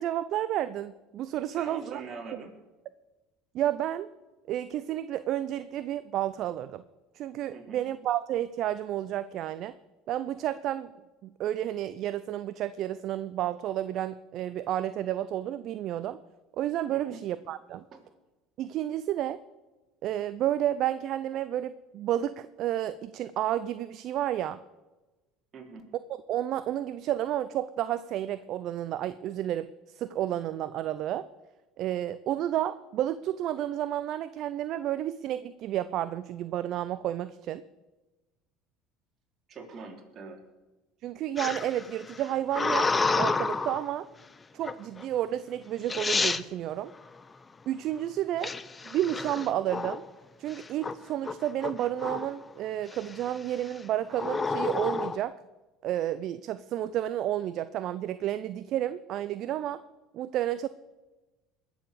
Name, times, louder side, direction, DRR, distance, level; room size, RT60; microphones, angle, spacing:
voice 1, 0.0-2.0 3.5-4.1 4.5-6.8 7.1-9.8 10.1-10.9 11.2-16.2 16.6-17.8 18.6-19.4 20.0-24.6 26.3-31.3 31.8-37.6 41.0-44.1 44.5-46.9 47.7-48.6 48.8-50.0 50.4-55.4 55.8-59.8 60.1-60.7, right 12 dB, 60° right, 15 dB, 0.5 m, -31 dB
voice 2, 1.4-2.6 7.5-7.8 16.9-17.2 17.9-18.0 25.5-25.8 39.5-40.4, right 4 dB, 45° right, 2 dB, 3.6 m, -43 dB
sound 1, 41.4-43.9 44.6-45.0 45.6-45.7 45.9-46.4 48.4-50.1 50.5-50.9 51.2-52.4 52.9-53.3 54.1-55.2, left 4 dB, 25° left, 0.7 m, -30 dB
21.0 x 7.2 x 6.8 m, 1.2 s
hypercardioid pair, 80°, 0 cm